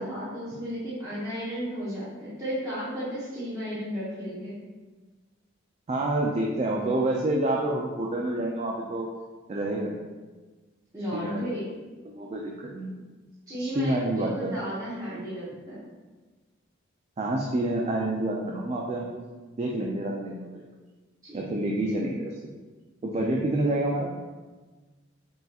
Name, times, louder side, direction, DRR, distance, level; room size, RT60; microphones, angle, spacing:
voice 1, 0.0-4.6 10.9-11.7 13.5-15.9 21.2-21.4, equal, 20° right, -10 dB, 0.9 m, -34 dB
voice 2, 5.9-9.1 9.5-10.0 11.1-11.4 12.1-12.9 13.6-14.6 17.2-19.1 19.6-20.6 21.3-22.3 23.0-24.1, right 1 dB, 35° right, -1 dB, 0.3 m, -28 dB
5.4 x 2.8 x 2.3 m, 1.3 s
head